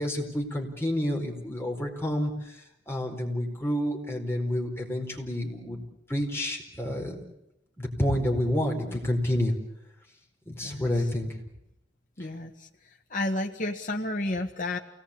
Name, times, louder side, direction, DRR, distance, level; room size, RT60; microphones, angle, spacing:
voice 1, 0.0-2.6 2.9-5.8 6.1-7.2 7.8-9.6 10.5-11.3 12.2-12.3, left 1 dB, 15° left, 1 dB, 4.6 m, -29 dB
voice 2, 12.2-12.7 13.1-14.8, left 2 dB, 45° left, 1 dB, 1.6 m, -31 dB
28.5 x 19.0 x 8.7 m, 0.85 s
head